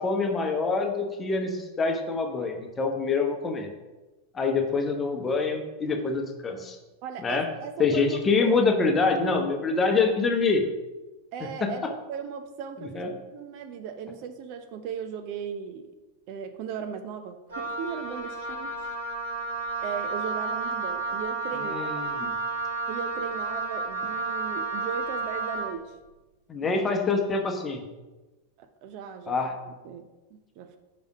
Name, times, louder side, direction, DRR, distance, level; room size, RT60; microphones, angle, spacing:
voice 1, 0.0-3.7 4.3-6.8 7.2-7.5 7.8-10.7 11.6-11.7 12.8-13.1 21.6-22.3 26.5-27.8 29.3-29.5, left 4 dB, 20° left, 4 dB, 1.1 m, -25 dB
voice 2, 7.0-8.6 11.3-11.8 12.1-15.9 16.3-18.9 19.8-22.0 22.9-25.9 26.6-26.8 28.6-29.4 29.7-30.8, right 7 dB, 45° right, 8 dB, 0.6 m, -37 dB
Wind instrument woodwind instrument, 17.5-25.8, right 3 dB, 75° right, 2.0 m, -31 dB
5.5 x 5.2 x 6.0 m, 1.1 s
figure-of-eight pair, 90°, 0 cm